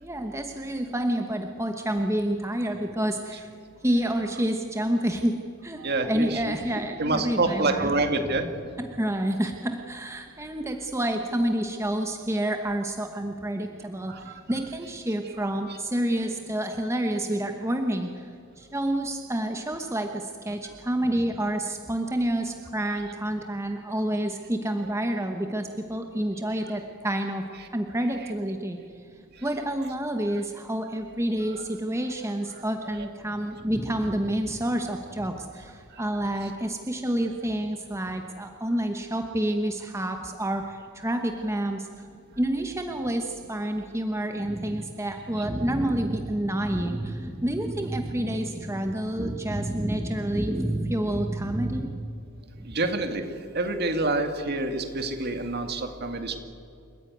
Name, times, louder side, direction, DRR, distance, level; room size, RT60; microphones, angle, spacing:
voice 1, 0.0-3.5 3.8-7.9 8.8-18.3 18.6-27.4 27.7-28.8 29.4-41.9 42.4-52.0 52.5-52.7, right 1 dB, 15° right, 4 dB, 1.1 m, -28 dB
voice 2, 5.8-6.5 7.0-8.5 14.1-14.3 15.7-15.8 26.5-26.6 33.0-33.1 36.0-36.1 36.4-36.5 45.4-45.5 52.7-53.2 53.5-56.4, right 2 dB, 50° right, 6 dB, 2.1 m, -27 dB
28.0 x 14.5 x 9.4 m, 2.5 s
head